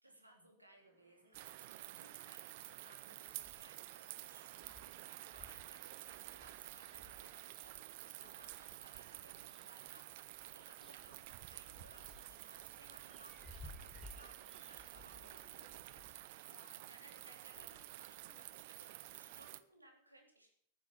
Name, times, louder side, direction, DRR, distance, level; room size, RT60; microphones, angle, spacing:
voice 1, 0.0-15.6 16.8-17.7 18.8-20.5, right 1 dB, 85° right, 2 dB, 3.2 m, -64 dB
Bird / Insect / Frog, 0.7-19.6, right 2 dB, 65° right, 5.0 m, -73 dB
sound 1, 1.3-19.6, right 17 dB, 50° right, 0.6 m, -51 dB
sound 2, 3.3-3.9 4.2-4.3 4.5-8.6 9.1-10.0 10.3-16.1, left 2 dB, 5° left, 2.2 m, -59 dB
voice 2, 15.3-18.7, left 5 dB, 70° left, 7 dB, 1.7 m, -68 dB
12.0 x 9.5 x 7.4 m, 0.67 s
figure-of-eight pair, 90°, 0 cm